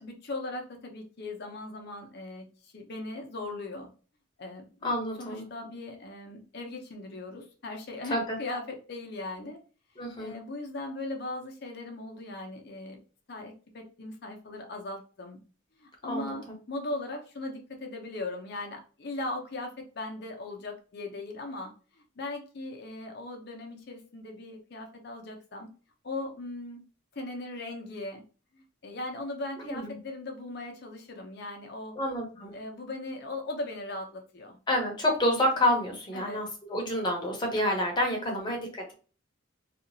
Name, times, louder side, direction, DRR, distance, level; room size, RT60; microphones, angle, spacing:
voice 1, 0.0-3.9 4.4-9.6 10.0-13.0 13.3-15.4 15.7-25.7 26.0-26.8 27.1-28.2 28.5-31.9 32.5-34.6 36.1-36.4 38.1-38.5, left 2 dB, 55° left, 3 dB, 0.6 m, -39 dB
voice 2, 4.8-5.5 8.1-8.4 10.0-10.4 16.1-16.4 29.6-29.9 32.0-32.5 34.7-38.9, left 1 dB, 20° left, 0 dB, 0.8 m, -28 dB
2.8 x 2.4 x 2.6 m, 0.37 s
head